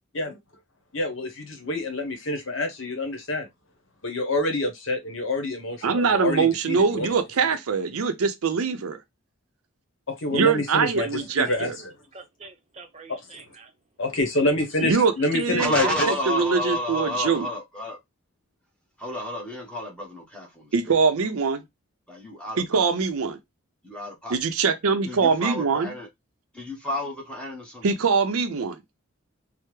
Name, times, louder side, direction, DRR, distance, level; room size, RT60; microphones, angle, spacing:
voice 1, 0.9-3.5 4.0-7.1 10.1-11.7 14.0-16.1, left 2 dB, 65° left, 0.9 m, -27 dB
voice 2, 5.8-9.0 10.3-11.8 14.8-17.5 20.7-21.6 22.6-23.4 24.3-25.9 27.8-28.8, right 5 dB, 90° right, 0.5 m, -23 dB
voice 3, 12.1-13.7 14.4-14.6, right 2 dB, 30° right, 0.5 m, -44 dB
voice 4, 15.6-18.0 19.0-20.9 22.1-22.8 23.8-24.4 25.1-26.1 26.5-27.9, left 1 dB, 5° left, 0.9 m, -31 dB
3.3 x 2.0 x 3.0 m
head